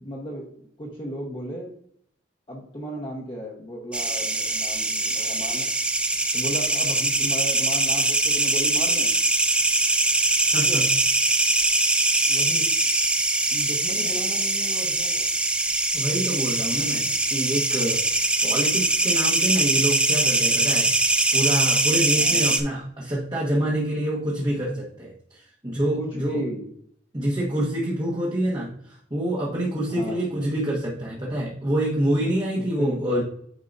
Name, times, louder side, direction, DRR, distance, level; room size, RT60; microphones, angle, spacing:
voice 1, 0.0-1.7 2.5-5.7 6.3-9.1 10.6-10.9 12.3-12.7 13.5-15.3 22.1-22.4 26.0-26.7 29.9-30.3 32.2-32.3 32.8-33.2, equal, 30° left, -4 dB, 1.1 m, -34 dB
sound 1, 3.9-22.6, right 2 dB, 5° right, 0.4 m, -22 dB
voice 2, 10.5-10.8 15.9-20.9 21.3-26.4 27.1-33.2, right 1 dB, 25° right, -5 dB, 1.2 m, -27 dB
9.2 x 4.7 x 2.6 m, 0.67 s
head